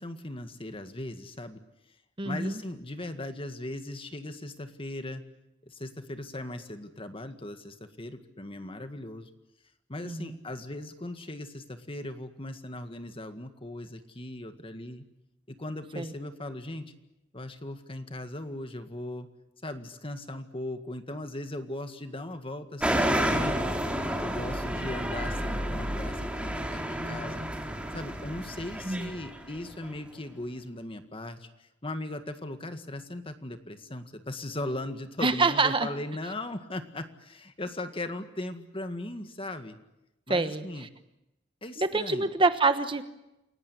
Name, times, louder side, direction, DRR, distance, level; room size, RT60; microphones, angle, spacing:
voice 1, 0.0-1.6 2.2-5.2 5.6-9.3 9.9-15.1 15.5-16.9 17.3-19.3 19.6-23.7 24.2-27.4 27.9-39.8 40.3-40.9 41.6-42.3, left 1 dB, 30° left, 8 dB, 1.9 m, -38 dB
voice 2, 2.2-2.6 10.0-10.4 16.0-16.1 28.8-29.1 35.2-35.9 40.3-40.7 41.8-43.0, right 3 dB, 25° right, 10 dB, 1.2 m, -26 dB
sound 1, 22.8-29.8, equal, 5° right, 3.0 m, -30 dB
29.0 x 17.0 x 9.9 m, 0.93 s
head